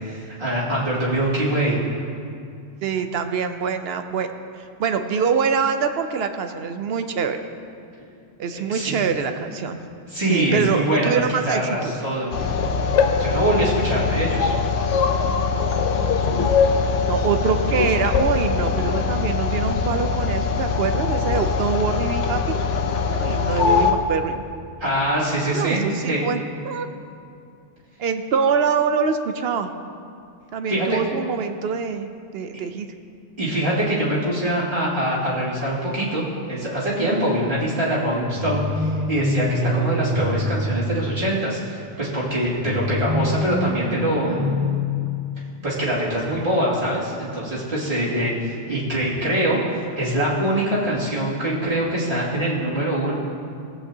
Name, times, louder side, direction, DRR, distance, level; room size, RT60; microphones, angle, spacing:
voice 1, 0.0-1.8 8.5-9.0 10.1-12.3 12.6-14.5 24.8-26.3 30.7-31.0 32.5-32.6 33.4-44.6 45.6-53.1, right 1 dB, 45° right, -8 dB, 2.7 m, -24 dB
voice 2, 2.8-4.3 4.6-7.4 8.4-9.8 10.3-11.9 17.0-22.6 23.1-24.4 25.5-26.9 28.0-29.7 30.5-32.1 32.3-32.9, right 6 dB, 65° right, 8 dB, 0.8 m, -24 dB
sound 1, 12.3-23.9, left 5 dB, 85° left, 1.1 m, -22 dB
sound 2, 38.3-41.5 42.6-45.6, left 2 dB, 5° right, 0.8 m, -25 dB
17.5 x 8.6 x 2.8 m, 2.4 s
omnidirectional pair, 1.2 m